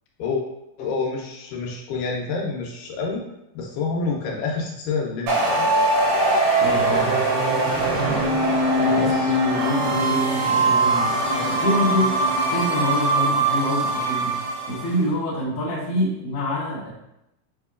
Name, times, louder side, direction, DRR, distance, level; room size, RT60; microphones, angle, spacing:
voice 1, 0.8-3.2 3.5-5.8 9.0-9.4, left 4 dB, 80° left, 0 dB, 2.2 m, -28 dB
sound 1, 5.3-14.9, right 2 dB, 80° right, 2.4 m, -21 dB
voice 2, 6.6-7.2 8.8-12.1 12.5-14.3 14.7-16.9, equal, 40° left, -9 dB, 1.3 m, -26 dB
6.2 x 2.8 x 2.4 m, 0.88 s
omnidirectional pair, 3.9 m